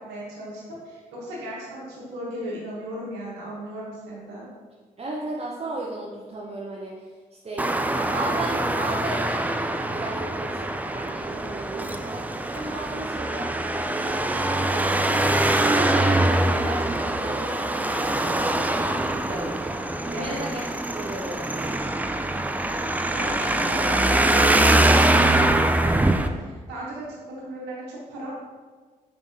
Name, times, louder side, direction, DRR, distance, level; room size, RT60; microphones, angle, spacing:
voice 1, 0.0-4.5 20.1-20.4 23.1-28.3, equal, 85° right, -5 dB, 1.0 m, -36 dB
voice 2, 5.0-7.7 7.9-13.5 14.0-19.8 20.1-21.8, right 1 dB, 35° right, -4 dB, 0.7 m, -35 dB
Traffic noise roadway noise, 7.6-26.3, right 1 dB, 10° right, 0.4 m, -23 dB
5.2 x 3.4 x 2.7 m, 1.5 s
hypercardioid pair, 40°, 17 cm